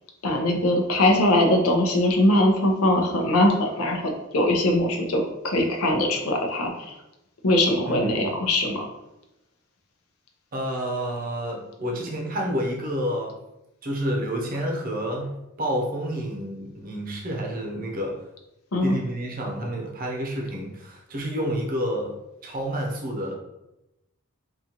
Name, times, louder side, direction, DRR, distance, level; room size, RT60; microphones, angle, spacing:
voice 1, 0.2-6.9 7.4-8.9 18.7-19.0, left 1 dB, 90° left, 2 dB, 0.7 m, -21 dB
voice 2, 7.9-8.3 10.5-13.4 13.8-18.3 18.8-23.3, equal, 40° right, 0 dB, 0.6 m, -29 dB
3.9 x 2.4 x 2.9 m, 0.90 s
head